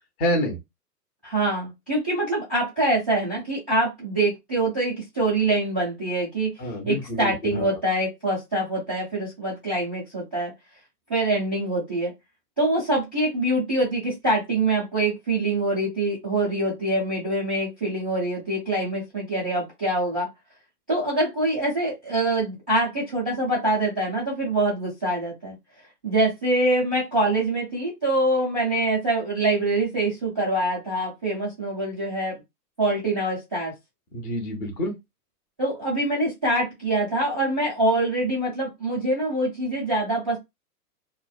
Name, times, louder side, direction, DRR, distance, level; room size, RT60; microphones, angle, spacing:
voice 1, 0.2-0.6 6.6-7.7 34.1-34.9, left 1 dB, 20° left, 0.7 m, -27 dB
voice 2, 1.2-6.5 6.8-10.5 11.1-12.1 12.6-20.3 20.9-25.6 26.0-32.3 32.8-33.7 35.6-40.4, right 1 dB, 10° right, 0.3 m, -24 dB
2.5 x 2.1 x 2.3 m
hypercardioid pair, 130°, 48 cm